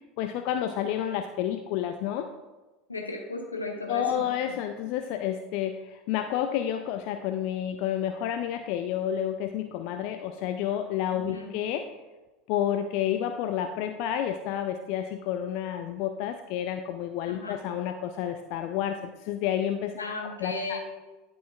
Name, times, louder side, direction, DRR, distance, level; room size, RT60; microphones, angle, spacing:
voice 1, 0.2-2.3 3.9-11.8 12.5-20.1 20.4-20.8, left 10 dB, 55° left, 6 dB, 0.3 m, -30 dB
voice 2, 2.9-4.3 11.1-11.5 17.3-17.6 20.0-20.8, left 2 dB, 85° left, 1 dB, 1.0 m, -35 dB
11.0 x 4.4 x 2.4 m, 1.2 s
figure-of-eight pair, 75°, 0 cm